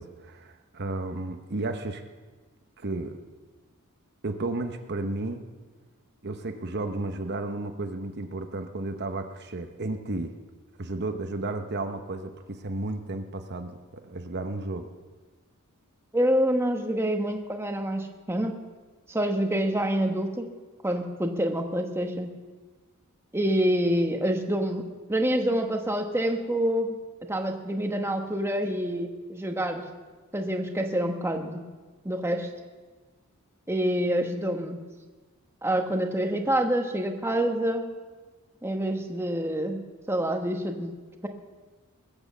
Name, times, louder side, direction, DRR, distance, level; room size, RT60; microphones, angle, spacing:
voice 1, 0.0-2.0 2.8-3.2 4.2-5.5 6.2-10.3 10.8-14.9, right 2 dB, 50° right, 7 dB, 0.9 m, -33 dB
voice 2, 16.1-18.5 19.1-20.5 20.8-22.3 23.3-24.8 25.1-26.9 27.3-29.9 30.3-31.6 32.0-32.5 33.7-34.8 35.6-37.9 38.6-39.8 40.1-40.9, right 1 dB, 10° right, 4 dB, 1.1 m, -27 dB
20.5 x 8.9 x 7.3 m, 1.3 s
head